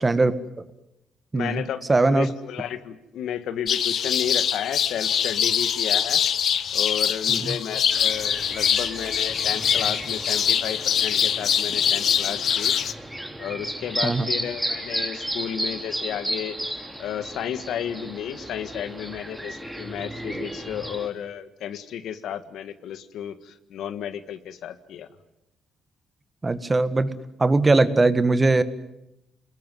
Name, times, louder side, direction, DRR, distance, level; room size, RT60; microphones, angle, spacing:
voice 1, 0.0-0.4 1.3-1.6 1.9-2.3 7.3-7.5 14.0-14.3 26.4-28.6, right 3 dB, 25° right, 13 dB, 1.7 m, -20 dB
voice 2, 1.3-6.2 6.7-12.7 13.4-25.1, left 9 dB, 80° left, 12 dB, 1.6 m, -33 dB
sound 1, 3.7-12.9, left 8 dB, 60° left, 1.1 m, -23 dB
sound 2, 7.9-21.1, right 1 dB, 5° right, 3.4 m, -34 dB
29.0 x 20.5 x 9.4 m, 0.87 s
cardioid pair, 90°, 0 cm